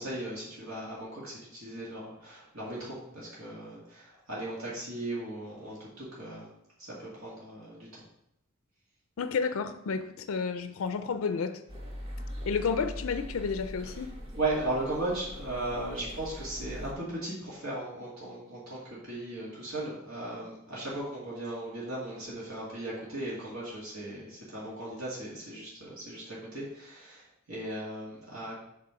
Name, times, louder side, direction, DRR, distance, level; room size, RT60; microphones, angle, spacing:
voice 1, 0.0-6.5 6.8-8.0 14.3-28.6, right 2 dB, 75° right, 2.2 m, -37 dB
voice 2, 9.2-11.6 12.5-14.1, left 5 dB, 70° left, 0.4 m, -31 dB
sound 1, 11.7-16.9, equal, 30° right, 1.1 m, -41 dB
7.5 x 3.4 x 5.8 m
head